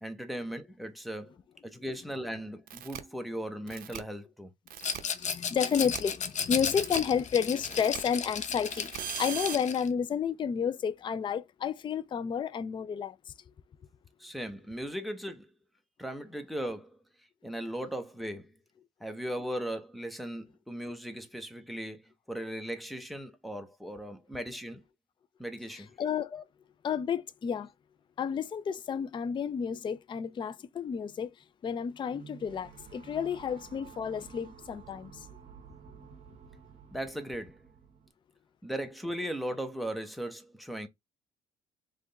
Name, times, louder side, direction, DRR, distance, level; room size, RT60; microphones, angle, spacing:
voice 1, 0.0-1.3 1.6-4.5 14.2-15.5 16.0-17.0 17.4-18.5 19.0-24.8 25.4-25.9 26.3-26.4 36.9-37.6 38.6-40.9, equal, ahead, 1.0 m, -38 dB
sound 1, 2.7-3.0 3.7-4.0 4.7-5.0 5.7-6.0 6.7-7.0 7.7-8.0 8.7-9.6, right 12 dB, 60° right, 0.7 m, -40 dB
Rattle, 4.8-9.9, left 7 dB, 45° left, 0.8 m, -34 dB
voice 2, 4.8-13.2 26.0-26.3 26.8-27.7 28.2-31.3 31.6-35.3, left 7 dB, 30° left, 0.4 m, -31 dB
sound 2, 32.1-38.1, right 7 dB, 40° right, 1.4 m, -52 dB
3.6 x 3.4 x 4.0 m
cardioid pair, 110°, 17 cm